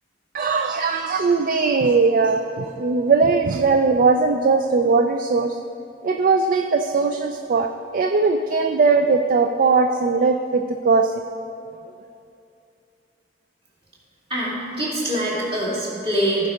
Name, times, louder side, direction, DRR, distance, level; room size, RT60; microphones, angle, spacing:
voice 1, 0.3-5.6 6.0-11.1, right 4 dB, 50° right, 6 dB, 0.4 m, -19 dB
voice 2, 14.3-16.5, right 1 dB, 30° right, -5 dB, 2.5 m, -24 dB
15.5 x 5.2 x 5.0 m, 2.7 s
head